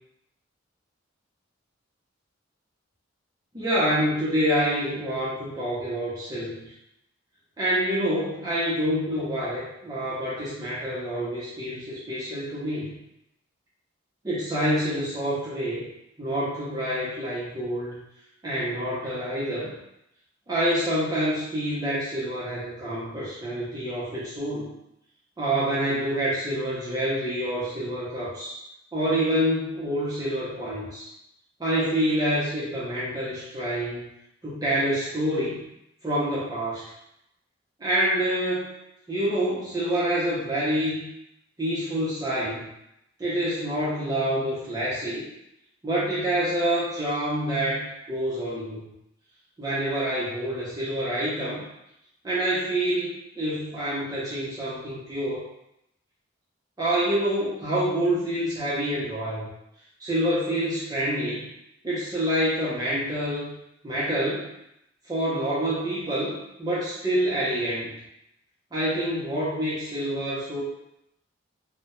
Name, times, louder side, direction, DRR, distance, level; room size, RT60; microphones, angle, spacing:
voice 1, 3.5-6.6 7.6-13.0 14.2-15.8 16.2-18.0 18.4-19.7 20.5-24.7 25.4-28.6 28.9-31.1 31.6-34.1 34.4-35.6 36.0-36.8 37.8-38.7 39.1-41.1 41.6-42.6 43.2-45.3 45.8-48.8 49.6-51.7 52.2-55.4 56.8-59.5 60.0-61.4 61.8-63.6 63.8-64.5 65.1-67.9 68.7-70.6, right 1 dB, 20° right, -9 dB, 0.5 m, -27 dB
2.2 x 2.0 x 2.9 m, 0.83 s
head